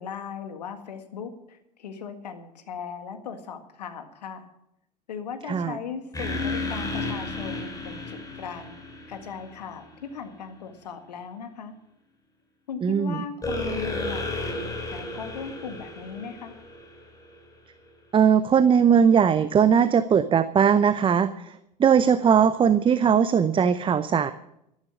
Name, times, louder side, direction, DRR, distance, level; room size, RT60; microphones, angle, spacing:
voice 1, 0.0-4.5 5.1-8.8 9.1-11.8 12.7-16.5, left 6 dB, 75° left, 8 dB, 1.8 m, -38 dB
sound 1, 6.1-9.8 13.4-17.3, left 2 dB, 15° left, 4.5 m, -33 dB
voice 2, 12.8-13.2 18.1-24.3, right 7 dB, 25° right, 13 dB, 0.7 m, -20 dB
13.5 x 11.5 x 6.1 m, 0.80 s
figure-of-eight pair, 75°, 21 cm